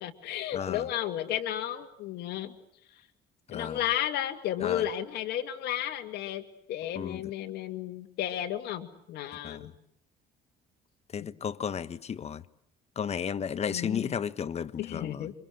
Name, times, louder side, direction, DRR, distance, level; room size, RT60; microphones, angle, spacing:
voice 1, 0.0-2.5 3.5-6.4 6.7-9.7 11.2-11.3 13.5-14.1 14.8-15.3, left 12 dB, 75° left, 2.5 m, -33 dB
voice 2, 0.5-0.9 3.5-3.8 4.6-4.8 7.0-7.2 9.4-9.6 11.1-12.4 13.0-15.3, left 7 dB, 40° left, 1.3 m, -33 dB
28.5 x 25.0 x 7.8 m
cardioid pair, 110°, 17 cm